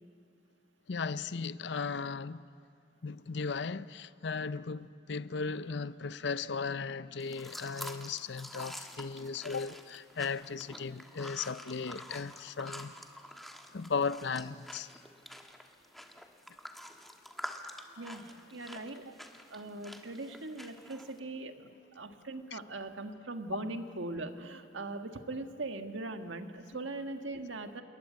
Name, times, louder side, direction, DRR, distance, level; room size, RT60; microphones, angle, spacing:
voice 1, 0.9-2.5 3.0-12.9 13.7-14.9 22.5-22.6, left 5 dB, 60° left, 0.6 m, -36 dB
sound 1, 7.2-21.2, equal, ahead, 1.3 m, -48 dB
voice 2, 18.0-19.1 19.5-21.6 21.9-27.8, right 2 dB, 75° right, 1.6 m, -40 dB
28.0 x 22.0 x 9.4 m
head